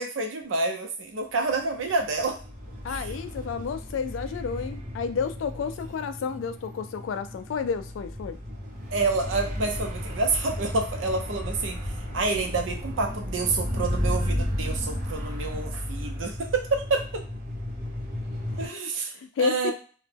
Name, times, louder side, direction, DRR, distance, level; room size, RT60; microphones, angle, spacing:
voice 1, 0.0-2.4 2.9-3.1 8.9-11.8 12.1-17.2 18.6-19.1 19.4-19.7, right 3 dB, 85° right, 4 dB, 0.6 m, -28 dB
sound 1, 1.8-18.7, left 1 dB, 40° right, 0.7 m, -33 dB
voice 2, 2.8-8.4 18.6-19.7, left 5 dB, 85° left, 10 dB, 0.3 m, -31 dB
2.2 x 2.0 x 3.2 m, 0.40 s
head